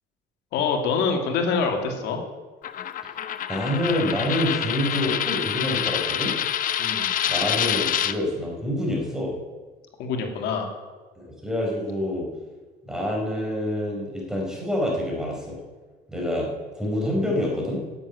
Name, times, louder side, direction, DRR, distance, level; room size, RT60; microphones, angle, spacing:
voice 1, 0.5-2.2 6.8-7.1 10.0-10.7, left 5 dB, 85° left, 3 dB, 2.4 m, -25 dB
Coin (dropping), 2.6-8.1, left 10 dB, 55° left, 0.8 m, -26 dB
voice 2, 3.5-6.4 7.3-9.3 11.2-12.3 12.8-15.6 16.1-16.5 16.7-17.8, left 1 dB, 5° right, -2 dB, 4.7 m, -27 dB
10.5 x 8.1 x 9.5 m, 1.3 s
cardioid pair, 110°, 17 cm